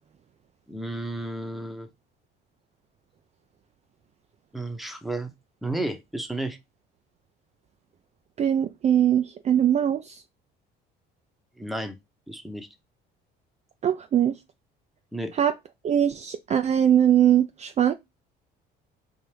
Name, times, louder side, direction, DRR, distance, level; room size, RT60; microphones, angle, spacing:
voice 1, 0.7-1.9 4.5-5.3 5.6-6.6 11.6-12.0 12.3-12.7 15.1-15.3, right 1 dB, ahead, 0.8 m, -32 dB
voice 2, 8.4-10.2 13.8-14.4 15.4-15.5 15.8-17.9, right 10 dB, 35° right, 0.4 m, -21 dB
4.5 x 2.5 x 3.2 m
supercardioid pair, 80°, 20 cm